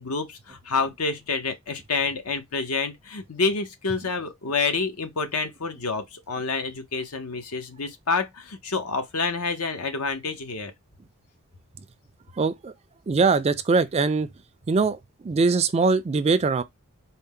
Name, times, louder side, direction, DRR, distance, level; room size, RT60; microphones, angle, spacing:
voice 1, 0.0-10.7, left 4 dB, 80° left, 0.8 m, -28 dB
voice 2, 12.3-12.7 13.1-14.3 14.7-15.0 15.2-16.6, right 4 dB, 30° right, 0.3 m, -22 dB
4.3 x 2.1 x 3.6 m
head